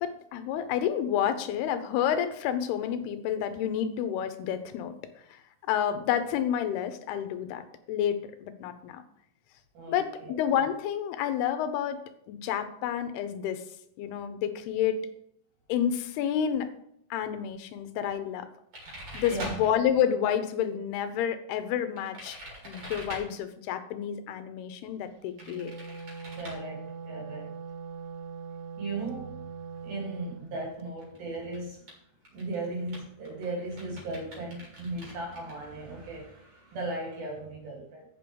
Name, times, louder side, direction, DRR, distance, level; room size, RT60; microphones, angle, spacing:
voice 1, 0.0-5.0 5.3-5.4 5.7-9.0 9.9-12.0 12.3-13.6 14.0-15.0 15.7-16.7 17.1-18.5 19.1-22.4 22.6-25.7, left 9 dB, 85° left, 10 dB, 2.8 m, -29 dB
voice 2, 9.7-10.5 19.0-19.6 26.4-27.5 28.8-29.4 29.8-31.9 32.3-38.0, right 2 dB, 65° right, -2 dB, 4.7 m, -37 dB
sound 1, 18.7-19.7 22.0-23.2 25.4-26.6 30.6-30.7 31.0-31.2 31.5-31.9 32.2-35.6, right 1 dB, 45° right, 3.9 m, -43 dB
Wind instrument woodwind instrument, 25.3-30.5, right 5 dB, 85° right, 1.9 m, -41 dB
8.5 x 6.9 x 5.2 m, 0.72 s
omnidirectional pair, 4.5 m